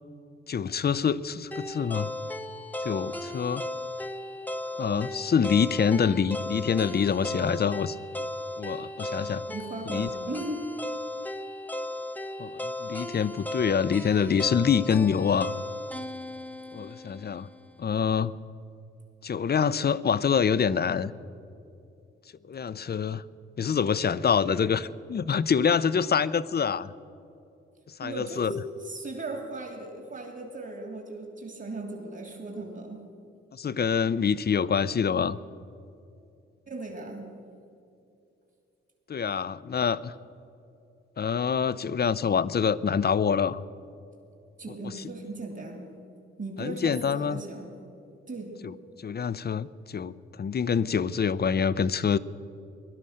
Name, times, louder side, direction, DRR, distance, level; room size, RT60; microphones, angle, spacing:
voice 1, 0.5-2.1 2.8-3.6 4.8-8.0 8.6-9.4 9.9-10.1 12.4-15.5 16.7-17.5 17.8-18.4 19.2-21.1 22.5-23.2 23.6-26.9 28.0-28.5 33.5-35.4 39.1-40.1 41.2-43.6 44.8-45.1 46.6-47.4 48.6-48.7 49.0-52.2, left 6 dB, 35° left, 17 dB, 0.6 m, -26 dB
sound 1, 1.5-17.6, left 1 dB, 5° left, 0.9 m, -36 dB
voice 2, 9.5-10.7 28.0-33.0 36.7-37.3 44.6-45.9 46.4-47.8 48.3-48.6, right 2 dB, 40° right, 3 dB, 2.6 m, -37 dB
17.0 x 12.0 x 6.5 m, 2.6 s
hypercardioid pair, 40°, 30 cm